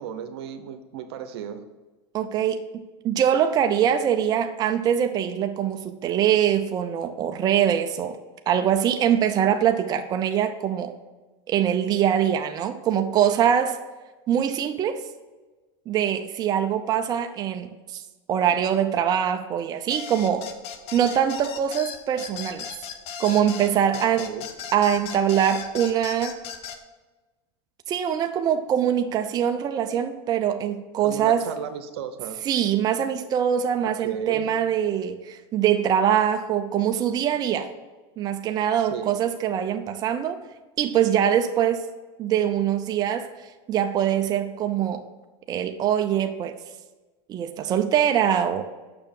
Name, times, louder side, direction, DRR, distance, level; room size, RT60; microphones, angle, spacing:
voice 1, 0.0-1.6 24.2-24.4 31.0-32.4 34.0-34.5 38.8-39.1, right 8 dB, 80° right, 9 dB, 0.9 m, -34 dB
voice 2, 2.1-8.2 8.5-10.9 11.5-13.8 14.3-15.0 15.9-18.0 18.3-20.5 20.9-22.7 23.2-24.3 24.7-26.4 27.9-31.5 32.4-37.7 38.2-40.4 40.8-41.8 42.2-43.3 43.7-45.0 45.5-46.6 47.3-48.6, right 9 dB, 30° right, 7 dB, 0.5 m, -23 dB
sound 1, 19.9-26.8, left 8 dB, 50° left, 0.8 m, -37 dB
7.0 x 5.7 x 5.3 m, 1.2 s
supercardioid pair, 130°, 13 cm